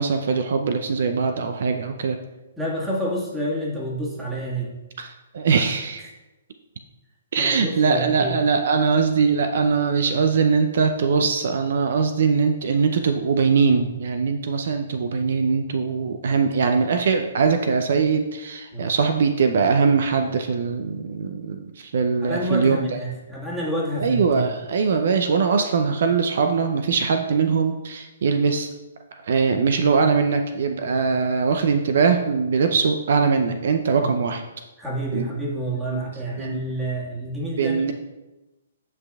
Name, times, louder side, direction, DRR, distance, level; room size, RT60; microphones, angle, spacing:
voice 1, 0.0-2.2 5.0-6.1 7.3-22.9 24.0-28.7 29.2-34.4 35.1-35.3 35.9-36.1 36.4-36.6 37.6-37.9, right 5 dB, 60° right, 6 dB, 0.5 m, -21 dB
voice 2, 2.6-4.7 7.4-8.4 18.7-18.9 22.2-24.5 34.0-34.1 34.8-37.9, right 1 dB, 5° right, -5 dB, 1.7 m, -28 dB
9.1 x 5.6 x 2.3 m, 1.1 s
figure-of-eight pair, 130°, 0 cm